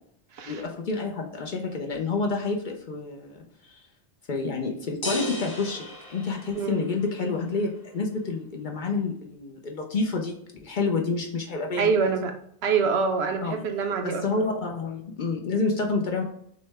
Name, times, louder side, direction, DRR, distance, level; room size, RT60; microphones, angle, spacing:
voice 1, 0.5-3.8 4.3-11.9 13.4-13.5 14.0-16.2, left 3 dB, 55° left, 1 dB, 0.7 m, -29 dB
sound 1, 5.0-7.1, left 1 dB, 20° left, 0.8 m, -34 dB
voice 2, 6.5-6.8 11.8-12.3 12.6-14.5, right 5 dB, 75° right, 6 dB, 0.9 m, -25 dB
6.2 x 2.1 x 3.3 m, 0.70 s
omnidirectional pair, 1.1 m